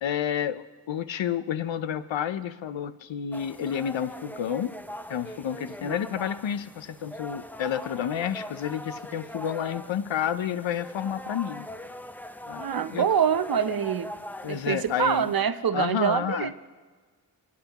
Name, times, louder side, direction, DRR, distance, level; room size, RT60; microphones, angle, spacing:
voice 1, 0.0-4.7 5.1-11.7 12.5-12.6 12.9-13.0 14.4-15.3 15.7-16.5, left 9 dB, 80° left, 13 dB, 0.7 m, -30 dB
sound 1, 3.3-15.4, equal, 5° left, 0.4 m, -41 dB
voice 2, 12.6-14.1 14.4-16.5, right 8 dB, 50° right, 12 dB, 0.7 m, -25 dB
26.5 x 9.4 x 3.0 m, 1.4 s
cardioid pair, 60°, 45 cm